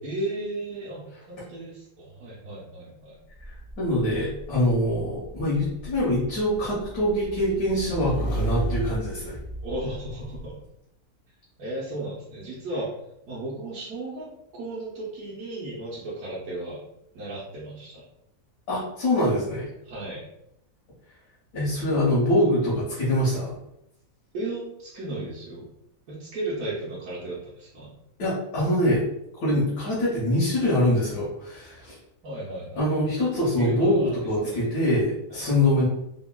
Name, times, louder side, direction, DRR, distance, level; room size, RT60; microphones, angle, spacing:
voice 1, 0.0-3.2 9.6-10.6 11.6-12.9 13.3-16.8 17.1-18.0 19.9-20.2 24.3-25.7 26.1-28.0 32.2-32.8 33.6-34.6 35.3-35.5, right 1 dB, 70° right, -7 dB, 1.1 m, -35 dB
Motorcycle / Engine, 3.4-10.5, right 1 dB, 65° left, 0.5 m, -33 dB
voice 2, 3.8-9.4 18.7-19.7 21.5-23.6 28.2-29.0 29.4-31.9 32.8-35.8, left 1 dB, 90° left, -7 dB, 1.4 m, -24 dB
3.5 x 2.0 x 2.2 m, 0.80 s
omnidirectional pair, 1.6 m